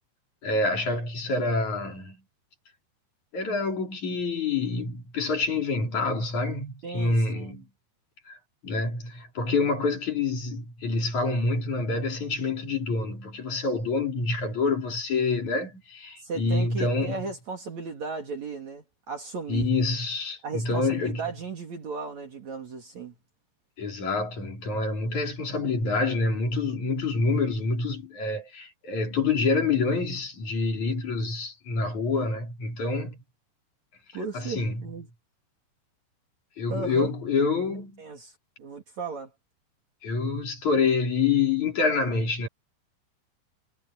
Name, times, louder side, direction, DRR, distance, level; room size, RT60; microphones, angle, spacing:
voice 1, 0.4-2.2 3.3-7.7 8.3-8.4 8.6-17.2 19.5-21.2 23.8-33.2 34.3-34.8 36.6-38.0 40.0-42.5, left 3 dB, 45° left, 5.8 m, -27 dB
voice 2, 6.8-7.6 16.2-19.7 20.4-23.1 34.1-35.1 36.7-37.1 38.0-38.3 38.6-39.3, right 4 dB, 50° right, 3.2 m, -35 dB
omnidirectional pair, 4.7 m